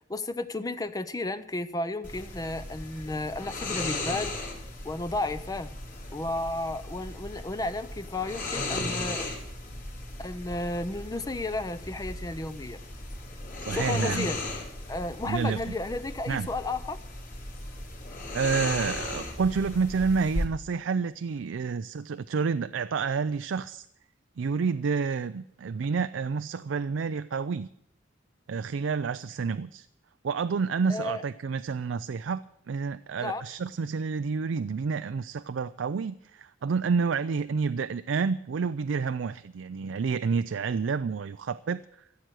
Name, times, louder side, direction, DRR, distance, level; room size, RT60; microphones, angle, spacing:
voice 1, 0.1-4.4 4.8-5.8 6.1-9.3 10.2-12.8 13.7-14.4 14.9-17.0 30.9-31.2 33.2-33.4, left 2 dB, 20° left, 12 dB, 0.6 m, -33 dB
sound 1, 2.0-20.5, left 2 dB, 45° left, 3.8 m, -36 dB
voice 2, 13.6-14.3 15.2-15.6 16.3-16.5 18.3-23.9 24.4-27.7 28.5-29.9 30.2-41.8, right 5 dB, 85° right, 13 dB, 0.4 m, -29 dB
15.0 x 7.7 x 8.2 m, 0.77 s
head